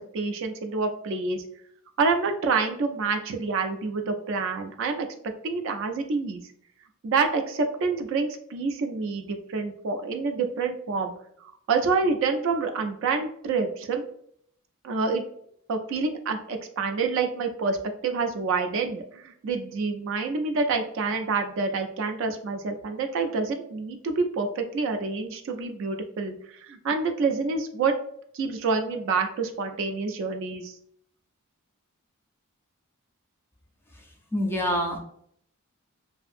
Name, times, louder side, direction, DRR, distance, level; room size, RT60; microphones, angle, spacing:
voice 1, 0.1-1.4 2.0-5.1 5.4-6.4 7.0-11.1 11.4-14.0 14.8-15.2 15.7-17.8 18.0-28.0 28.3-30.7, right 4 dB, 60° right, 5 dB, 0.3 m, -27 dB
voice 2, 34.3-35.0, equal, 10° left, 1 dB, 0.4 m, -25 dB
2.7 x 2.5 x 2.5 m, 0.67 s
head